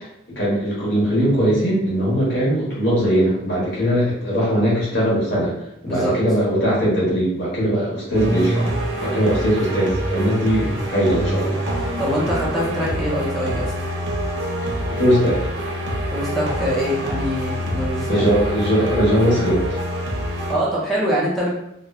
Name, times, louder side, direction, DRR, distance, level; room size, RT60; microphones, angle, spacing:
voice 1, 0.3-5.5 5.8-8.7 9.0-11.6 14.9-15.5 18.1-19.7, equal, 60° left, -7 dB, 1.2 m, -20 dB
voice 2, 5.9-6.2 12.0-13.7 16.1-18.3 20.5-21.5, equal, ahead, -7 dB, 0.6 m, -24 dB
sound 1, 8.1-20.5, right 1 dB, 60° right, 0.5 m, -25 dB
2.9 x 2.1 x 2.3 m, 0.80 s
head